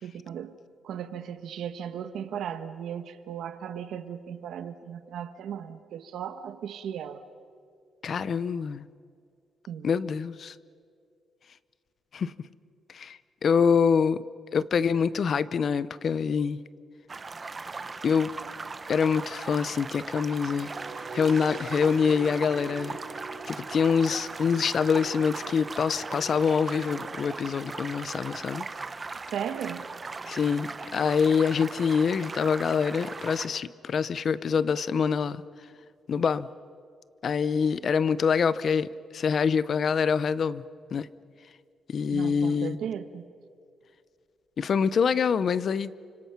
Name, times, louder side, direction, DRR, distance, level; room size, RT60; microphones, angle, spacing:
voice 1, 0.0-0.6 0.8-7.2 9.7-9.9 29.3-29.9 42.1-43.3, right 9 dB, 80° right, 10 dB, 1.3 m, -36 dB
voice 2, 8.0-8.9 9.8-10.5 12.1-12.3 12.9-14.2 14.5-16.6 18.0-18.3 18.9-20.7 21.1-23.0 23.5-28.7 30.3-35.4 36.1-36.5 37.2-40.6 40.9-41.1 41.9-42.8 44.6-45.9, left 6 dB, 45° left, 17 dB, 0.6 m, -25 dB
sound 1, 17.1-33.5, right 4 dB, 25° right, 0.8 m, -39 dB
sound 2, 20.5-26.5, right 4 dB, 50° right, 7.0 m, -44 dB
29.5 x 25.5 x 5.9 m, 2.3 s
cardioid pair, 150°, 0 cm